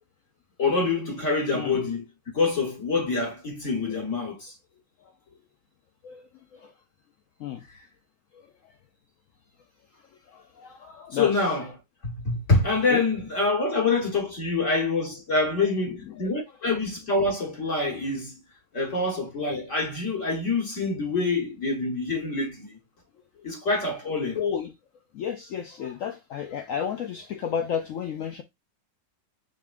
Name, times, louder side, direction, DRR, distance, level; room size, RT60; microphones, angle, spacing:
voice 1, 0.6-2.0 2.3-4.5 11.1-11.7 12.0-18.3 18.7-22.8 23.4-24.4, left 3 dB, 50° left, 1.5 m, -26 dB
voice 2, 6.0-6.7 7.4-7.7 8.3-8.7 9.9-11.4 12.9-13.0 15.9-16.3 16.7-16.8 23.4-23.5 24.3-24.7 25.1-28.4, left 8 dB, 75° left, 0.7 m, -33 dB
5.6 x 3.4 x 2.4 m
omnidirectional pair, 1.9 m